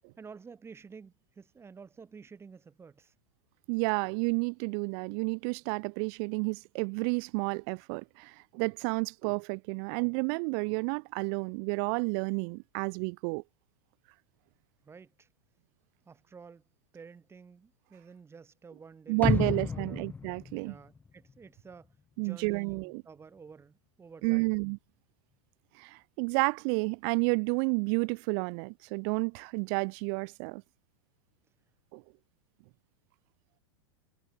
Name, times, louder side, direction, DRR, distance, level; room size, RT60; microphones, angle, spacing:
voice 1, 0.2-3.1 14.8-15.3 16.1-16.6 16.9-20.1 20.6-24.6, right 5 dB, 15° right, 3.6 m, -51 dB
voice 2, 3.7-13.4 19.1-20.8 22.2-23.0 24.2-24.8 25.8-30.6 31.9-32.0, right 40 dB or more, 55° right, 1.2 m, -31 dB
sound 1, 19.2-21.4 21.7-21.8, left 5 dB, 10° left, 0.4 m, -32 dB
hypercardioid pair, 120°, 15 cm